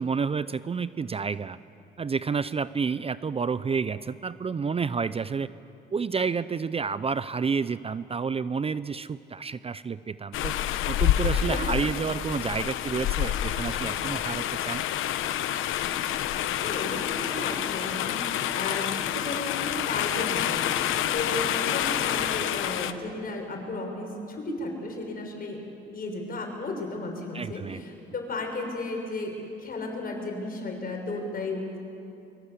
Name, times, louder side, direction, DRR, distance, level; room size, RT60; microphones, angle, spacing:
voice 1, 0.0-1.6 2.0-5.5 5.9-10.6 10.9-14.8 27.3-27.8, right 5 dB, 30° right, 15 dB, 0.6 m, -30 dB
sound 1, 10.3-22.9, left 11 dB, 90° left, 1.0 m, -28 dB
voice 2, 11.3-11.7 16.4-29.3 29.6-31.8, left 2 dB, 45° left, 2 dB, 6.3 m, -34 dB
23.5 x 22.5 x 8.3 m, 2.7 s
cardioid pair, 90°, 20 cm